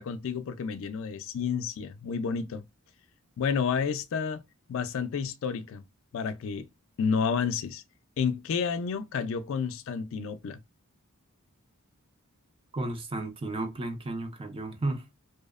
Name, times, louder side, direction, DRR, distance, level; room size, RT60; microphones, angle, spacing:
voice 1, 0.0-2.6 3.4-4.4 4.7-5.8 6.1-6.7 7.0-7.8 8.2-10.6, left 6 dB, 60° left, 0.3 m, -30 dB
voice 2, 12.7-15.0, right 2 dB, 25° right, 0.4 m, -33 dB
2.7 x 2.0 x 2.3 m
head